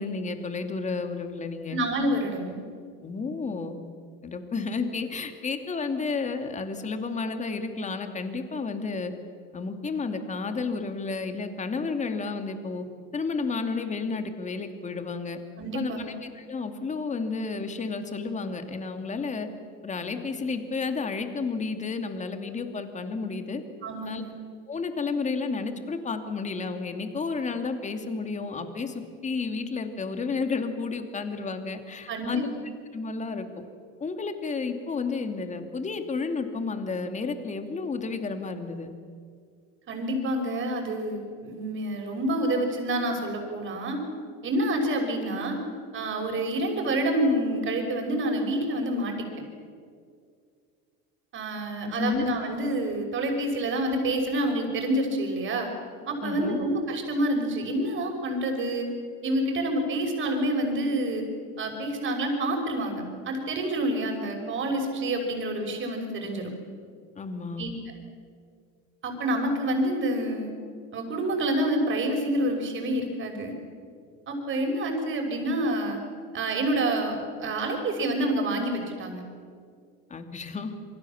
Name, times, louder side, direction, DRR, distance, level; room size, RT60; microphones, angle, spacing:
voice 1, 0.0-1.8 3.0-3.8 4.2-9.1 9.5-12.8 13.1-15.4 15.7-19.5 19.8-23.6 24.1-24.2 24.7-32.5 32.9-33.6 34.0-38.9 51.8-52.3 56.2-56.6 67.2-67.6 80.1-80.7, left 4 dB, 25° left, 7 dB, 2.7 m, -31 dB
voice 2, 1.7-2.6 15.6-16.0 23.8-24.3 32.1-32.4 39.9-44.0 44.4-45.6 45.9-49.3 51.3-55.7 56.1-58.9 59.2-61.2 61.6-66.5 67.6-67.7 69.0-70.5 70.9-73.5 74.3-76.0 76.3-79.2, right 1 dB, 40° right, 3 dB, 6.0 m, -28 dB
27.5 x 24.0 x 7.4 m, 2.2 s
supercardioid pair, 120°, 31 cm